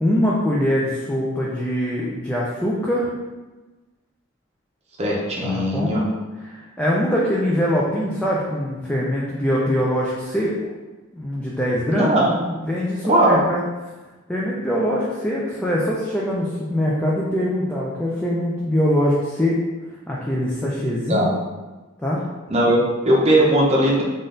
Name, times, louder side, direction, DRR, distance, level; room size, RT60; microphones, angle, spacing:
voice 1, 0.0-3.1 5.4-5.9 6.4-10.5 11.1-12.1 12.6-13.6 14.3-19.6 20.1-21.3 22.0-22.2, equal, 5° left, -5 dB, 0.4 m, -23 dB
voice 2, 5.0-6.0 11.9-12.4 13.1-13.4 21.1-21.3 22.5-24.0, right 1 dB, 30° right, -2 dB, 0.7 m, -18 dB
3.9 x 2.6 x 3.8 m, 1.2 s
head